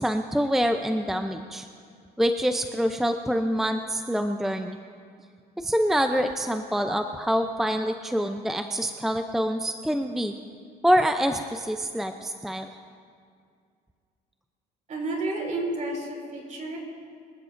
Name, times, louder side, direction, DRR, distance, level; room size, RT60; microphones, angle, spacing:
voice 1, 0.0-1.7 2.2-4.8 5.6-10.3 10.8-12.7, equal, ahead, 6 dB, 0.5 m, -26 dB
voice 2, 14.9-16.8, right 2 dB, 50° right, 0 dB, 4.6 m, -31 dB
24.5 x 15.0 x 2.6 m, 2.3 s
cardioid pair, 110°, 17 cm